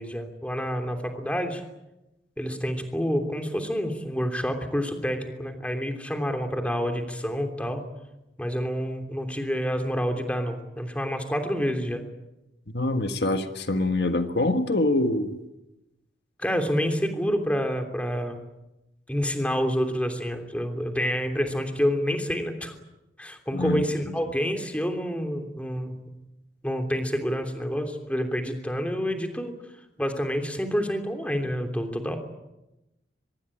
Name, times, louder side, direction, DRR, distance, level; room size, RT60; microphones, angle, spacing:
voice 1, 0.0-1.6 2.4-7.8 8.4-12.0 16.4-18.4 19.1-22.7 23.2-26.0 26.6-29.5 30.0-32.2, equal, 5° left, 5 dB, 3.1 m, -28 dB
voice 2, 12.7-15.4 23.5-23.9, left 2 dB, 65° left, 7 dB, 1.6 m, -25 dB
25.0 x 21.5 x 8.9 m, 0.95 s
head